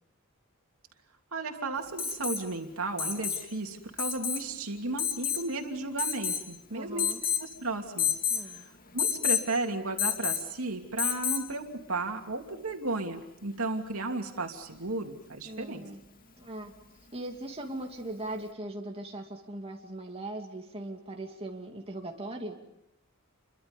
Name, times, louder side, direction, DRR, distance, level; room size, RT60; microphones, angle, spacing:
voice 1, 1.3-7.1 7.4-8.1 8.5-8.6 8.9-15.8, right 2 dB, 90° right, 3 dB, 2.8 m, -34 dB
Alarm, 2.0-2.4 3.0-3.5 4.0-4.4 5.0-5.5 6.0-6.5 7.0-7.5 8.0-8.4 9.0-9.5 10.0-10.5 11.0-11.5 13.2-13.3, left 8 dB, 45° left, 2.1 m, -29 dB
voice 2, 6.7-7.2 8.3-8.7 15.4-16.0 16.4-16.7 17.1-22.6, right 1 dB, 30° right, 1 dB, 2.7 m, -39 dB
29.5 x 24.5 x 5.4 m, 0.85 s
head